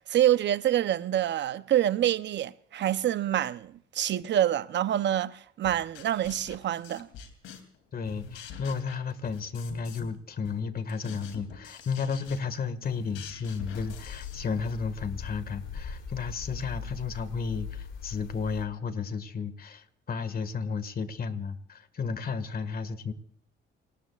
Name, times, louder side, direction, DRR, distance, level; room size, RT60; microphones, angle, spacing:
voice 1, 0.0-7.1, right 11 dB, 65° right, 0.8 m, -26 dB
sound 1, 5.6-7.8 8.0-10.2 10.4-14.8, left 6 dB, 90° left, 2.9 m, -46 dB
voice 2, 7.9-23.1, left 5 dB, 50° left, 1.8 m, -33 dB
sound 2, 13.6-18.7, left 6 dB, 70° left, 3.2 m, -40 dB
29.5 x 18.5 x 2.4 m
cardioid pair, 90°, 20 cm